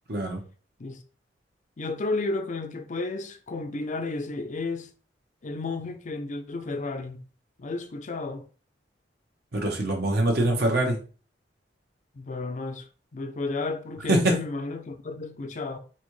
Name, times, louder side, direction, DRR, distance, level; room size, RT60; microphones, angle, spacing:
voice 1, 0.1-0.4 9.5-11.0 14.1-14.3, right 1 dB, 60° right, 1.1 m, -23 dB
voice 2, 1.8-4.9 5.4-7.2 7.6-8.5 12.1-12.9 13.1-15.8, left 3 dB, 45° left, 0.5 m, -32 dB
4.2 x 3.6 x 3.2 m
head